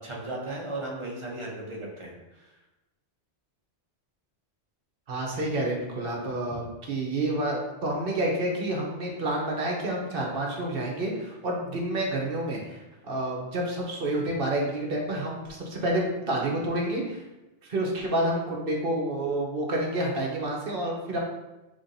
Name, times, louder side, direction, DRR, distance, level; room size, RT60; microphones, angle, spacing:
voice 1, 0.0-2.5, right 2 dB, 30° right, -3 dB, 0.9 m, -36 dB
voice 2, 5.1-17.2 17.6-21.2, right 1 dB, 55° right, -1 dB, 1.1 m, -29 dB
5.6 x 3.5 x 2.7 m, 1.0 s
omnidirectional pair, 1.2 m